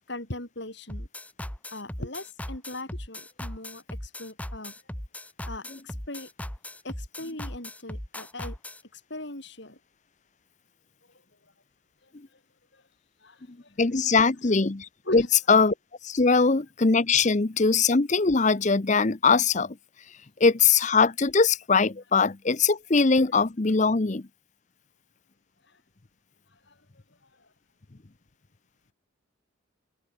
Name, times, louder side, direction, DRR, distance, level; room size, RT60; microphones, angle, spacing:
voice 1, 0.1-1.1 1.7-4.7 5.4-6.3 6.8-8.6 8.9-9.8 12.0-12.1 12.7-12.8 13.2-13.7 15.0-15.2 25.7-25.8 26.7-26.8 27.4-27.5, left 1 dB, 55° left, 4.6 m, -39 dB
sound 1, 0.9-8.8, left 1 dB, 5° left, 1.2 m, -38 dB
voice 2, 13.8-15.7 16.0-19.8 20.4-24.3, left 4 dB, 35° left, 0.7 m, -21 dB
head